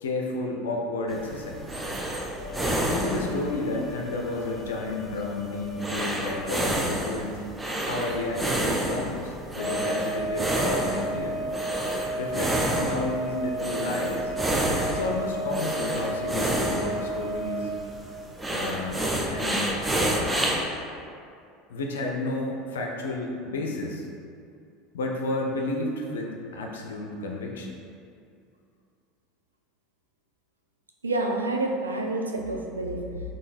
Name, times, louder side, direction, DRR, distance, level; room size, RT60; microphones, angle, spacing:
voice 1, 0.0-1.8 2.9-7.5 7.8-11.4 12.2-14.3 14.9-17.7 18.5-19.0 19.3-19.7 21.7-24.1 24.9-27.7, left 2 dB, 70° left, 0 dB, 0.4 m, -31 dB
sound 1, 1.1-20.7, right 1 dB, 15° right, 0.5 m, -30 dB
sound 2, 2.4-6.0 9.6-17.8, right 1 dB, 5° left, 0.9 m, -34 dB
voice 2, 31.0-33.2, right 2 dB, 85° right, 2 dB, 0.3 m, -28 dB
3.8 x 3.6 x 2.5 m, 2.4 s
figure-of-eight pair, 75°, 0 cm